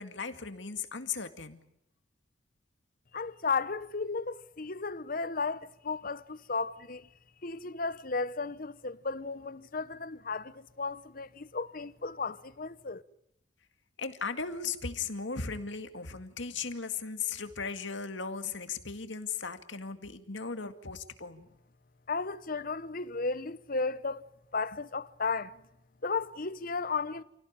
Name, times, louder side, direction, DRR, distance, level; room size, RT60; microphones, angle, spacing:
voice 1, 0.0-1.6 14.0-21.5, left 5 dB, 80° left, 2.2 m, -37 dB
voice 2, 3.1-7.1 7.4-13.0 22.1-24.3 24.5-25.6 26.0-27.2, left 4 dB, 50° left, 1.0 m, -34 dB
28.5 x 17.5 x 8.9 m
head